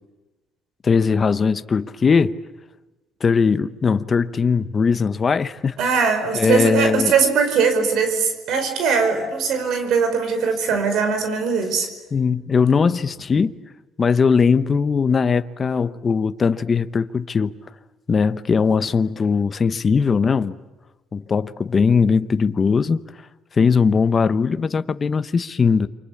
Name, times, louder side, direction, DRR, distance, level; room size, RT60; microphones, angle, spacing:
voice 1, 0.8-2.4 3.2-5.8 6.3-7.1 12.1-13.5 14.0-17.5 18.1-20.6 21.1-23.0 23.5-25.9, left 5 dB, 35° left, 0.8 m, -19 dB
voice 2, 5.8-11.9, right 5 dB, 70° right, 5.0 m, -20 dB
28.5 x 24.5 x 8.5 m
cardioid pair, 105°, 0 cm